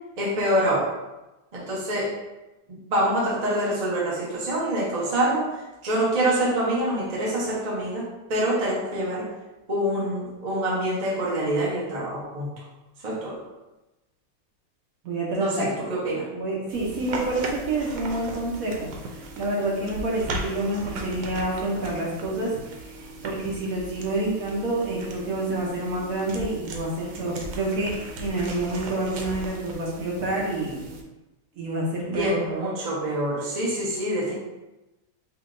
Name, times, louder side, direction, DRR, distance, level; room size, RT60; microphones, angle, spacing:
voice 1, 0.2-0.9 1.5-2.2 2.9-9.3 9.7-12.6 13.0-13.4 15.4-16.3 32.1-34.3, right 1 dB, 35° right, -5 dB, 0.7 m, -26 dB
voice 2, 15.0-15.7 16.3-30.8 31.6-32.4, right 2 dB, 60° right, -4 dB, 1.1 m, -28 dB
sound 1, 16.7-31.0, right 2 dB, 90° right, 1.3 m, -37 dB
4.8 x 2.8 x 2.5 m, 1.0 s
omnidirectional pair, 1.8 m